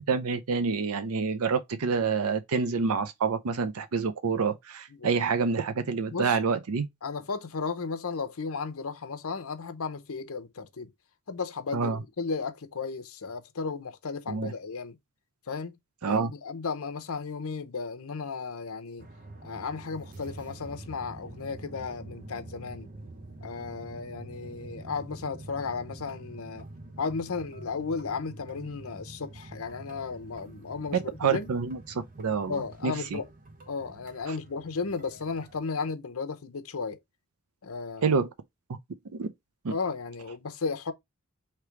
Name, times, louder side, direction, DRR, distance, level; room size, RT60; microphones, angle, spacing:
voice 1, 0.0-6.9 11.7-12.0 14.3-14.5 16.0-16.3 31.2-33.2 38.0-38.3 39.1-39.3 39.6-39.7, right 5 dB, 85° right, 0.5 m, -27 dB
voice 2, 7.0-10.9 11.3-15.0 15.5-15.7 16.0-19.1 19.4-22.9 23.4-26.7 27.0-31.5 32.5-33.3 33.7-37.0 37.6-38.1 39.7-40.9, left 4 dB, 80° left, 0.7 m, -34 dB
sound 1, 19.0-35.6, right 2 dB, 40° right, 0.6 m, -46 dB
3.2 x 3.0 x 4.6 m
head